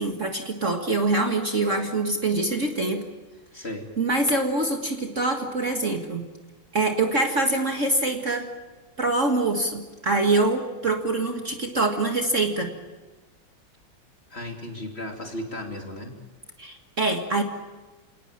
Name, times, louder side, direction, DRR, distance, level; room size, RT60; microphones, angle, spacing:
voice 1, 0.0-3.0 3.6-3.7 4.0-6.3 6.7-8.5 9.0-12.7 16.6-17.4, right 2 dB, 40° right, 3 dB, 2.0 m, -24 dB
voice 2, 3.5-3.9 14.3-16.2, left 1 dB, 30° left, 3 dB, 3.1 m, -35 dB
28.5 x 18.5 x 8.8 m, 1.2 s
omnidirectional pair, 2.2 m